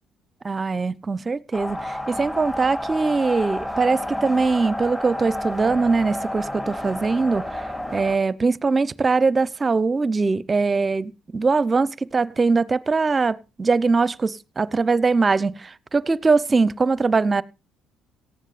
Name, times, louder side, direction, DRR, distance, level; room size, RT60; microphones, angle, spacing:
voice 1, 0.4-17.4, right 4 dB, 30° right, 0.8 m, -22 dB
sound 1, 1.5-8.2, left 1 dB, 10° left, 3.1 m, -30 dB
18.0 x 14.5 x 2.5 m
hypercardioid pair, 50°, 0 cm